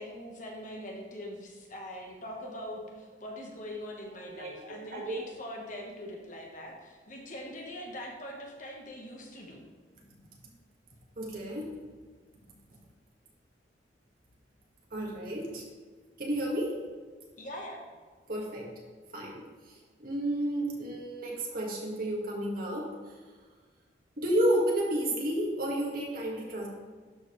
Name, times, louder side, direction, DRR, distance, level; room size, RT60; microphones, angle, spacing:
voice 1, 0.0-9.6 17.4-17.8, left 1 dB, 45° left, 0 dB, 1.2 m, -42 dB
voice 2, 4.2-5.2 11.2-11.7 14.9-15.6 16.2-16.8 18.3-18.7 19.1-22.9 24.2-26.7, right 1 dB, 55° right, -2 dB, 1.8 m, -31 dB
12.0 x 5.0 x 3.2 m, 1.5 s
head